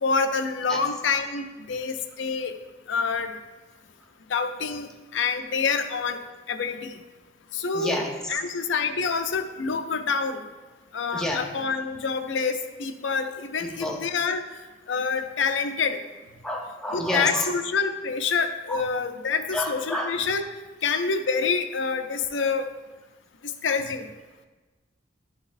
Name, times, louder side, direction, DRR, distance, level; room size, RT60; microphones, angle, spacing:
voice 1, 0.0-2.5 2.9-3.3 4.3-6.2 6.5-6.9 7.5-8.0 8.3-10.4 10.9-14.4 14.9-16.0 16.9-20.4 20.8-22.7 23.4-24.1, left 5 dB, 75° left, 8 dB, 0.5 m, -27 dB
voice 2, 7.7-8.1 11.1-11.4 13.6-14.0 16.4-17.5 18.7-18.8 19.5-20.1, left 1 dB, 5° left, 0 dB, 0.8 m, -29 dB
11.5 x 3.9 x 2.6 m, 1.2 s
head